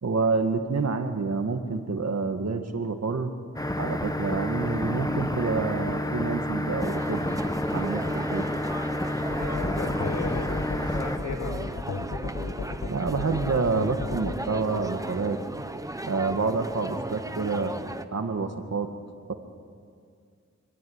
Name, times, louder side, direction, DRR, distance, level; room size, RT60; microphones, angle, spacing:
voice 1, 0.0-3.3 3.8-7.3 7.7-8.5 12.9-15.4 16.0-17.8 18.1-18.9 19.3-19.4, right 4 dB, 60° right, 6 dB, 2.0 m, -28 dB
sound 1, 3.6-11.2, left 1 dB, 10° left, 1.4 m, -30 dB
sound 2, 6.8-18.0, right 1 dB, 10° right, 1.1 m, -36 dB
sound 3, 9.3-14.4, left 3 dB, 60° left, 2.1 m, -33 dB
voice 2, 9.4-11.6, left 3 dB, 85° left, 5 dB, 4.5 m, -36 dB
26.0 x 24.0 x 9.7 m, 2.3 s
wide cardioid pair, 115°, 29 cm